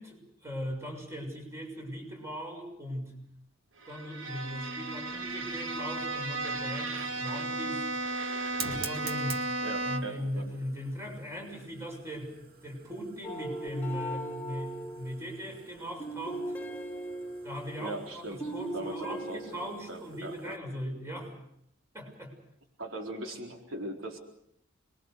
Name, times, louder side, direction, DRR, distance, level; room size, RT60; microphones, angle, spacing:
voice 1, 0.0-3.2 3.9-7.8 8.6-9.5 9.8-16.5 17.4-21.4 21.9-22.4, equal, 15° right, 2 dB, 6.7 m, -39 dB
Bowed string instrument, 3.8-10.3, right 2 dB, 70° right, 2.0 m, -34 dB
Fire, 4.9-20.6, right 5 dB, 50° right, 2.2 m, -49 dB
voice 2, 9.6-10.6 17.8-18.4 18.7-20.6 22.8-24.2, right 1 dB, 85° right, 2 dB, 4.1 m, -40 dB
sound 1, 13.2-18.1 18.4-19.6, right 1 dB, 10° left, 2.9 m, -39 dB
27.0 x 22.5 x 6.7 m, 0.73 s
head